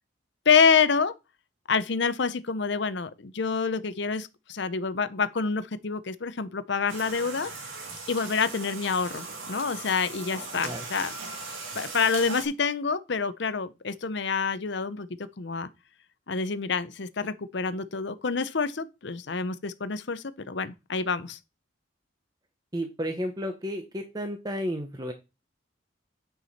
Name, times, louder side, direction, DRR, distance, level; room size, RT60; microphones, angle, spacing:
voice 1, 0.5-1.1 1.7-7.5 8.1-11.2 11.7-15.1 15.4-15.7 16.3-21.4, left 5 dB, 60° left, 0.6 m, -27 dB
sound 1, 6.9-12.5, right 4 dB, 80° right, 2.2 m, -39 dB
voice 2, 22.7-25.1, equal, 20° right, 0.9 m, -32 dB
9.2 x 4.8 x 4.1 m
head